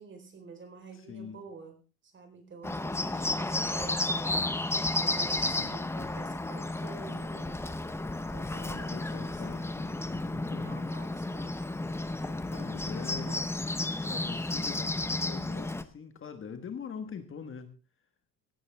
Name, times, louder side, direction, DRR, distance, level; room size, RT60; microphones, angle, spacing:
voice 1, 0.0-1.7 2.0-4.4 5.0-7.6 8.3-9.6 10.6-11.6 12.9-13.5, right 4 dB, 30° right, 6 dB, 4.4 m, -48 dB
voice 2, 0.9-1.4 5.2-6.1 8.5-10.8 12.5-13.4 14.0-17.7, left 6 dB, 30° left, 8 dB, 1.5 m, -43 dB
Bird, 2.6-15.8, left 2 dB, 5° left, 0.8 m, -32 dB
17.0 x 14.0 x 3.5 m, 0.34 s
cardioid pair, 150°, 39 cm